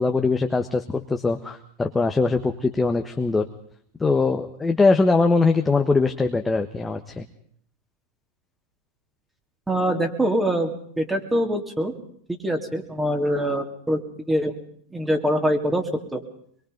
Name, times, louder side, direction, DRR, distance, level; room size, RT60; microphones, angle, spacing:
voice 1, 0.0-3.5 4.0-7.2, left 3 dB, 15° left, 4 dB, 1.4 m, -21 dB
voice 2, 9.7-11.9 12.3-14.0 14.3-14.5 14.9-16.2, equal, 10° right, 4 dB, 2.9 m, -24 dB
23.0 x 22.5 x 5.3 m, 0.62 s
hypercardioid pair, 100°, 0 cm